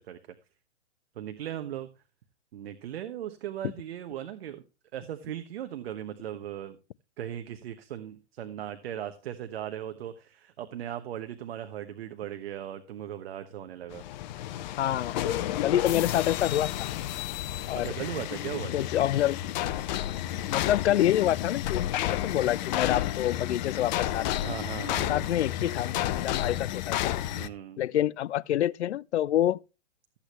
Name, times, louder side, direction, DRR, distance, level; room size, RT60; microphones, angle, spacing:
voice 1, 1.1-1.9 2.5-4.6 4.9-6.8 7.2-14.1 17.7-18.9 24.4-25.3 27.4-27.8, right 11 dB, 60° right, 1.1 m, -38 dB
sound 1, 13.9-27.5, left 13 dB, 40° left, 0.8 m, -31 dB
voice 2, 14.8-16.7 17.7-17.9 18.7-19.4 20.5-24.4 25.1-27.1 27.8-29.6, left 12 dB, 75° left, 0.5 m, -27 dB
14.0 x 8.5 x 3.0 m
hypercardioid pair, 135°, 34 cm